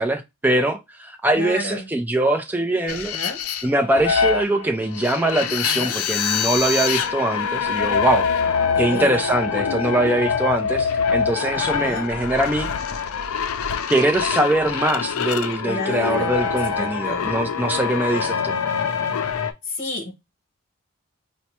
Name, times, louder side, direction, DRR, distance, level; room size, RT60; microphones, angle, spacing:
voice 1, 0.0-3.2 3.6-8.3 8.8-12.7 13.9-18.6, right 1 dB, 10° right, 0.4 m, -22 dB
voice 2, 1.4-1.9 2.9-3.4 5.4-6.0 8.7-9.3 11.5-12.1 15.6-16.4 16.8-17.3 19.6-20.1, left 2 dB, 40° left, 1.0 m, -31 dB
sound 1, 2.9-19.5, left 6 dB, 85° left, 0.4 m, -24 dB
4.5 x 2.1 x 2.8 m
head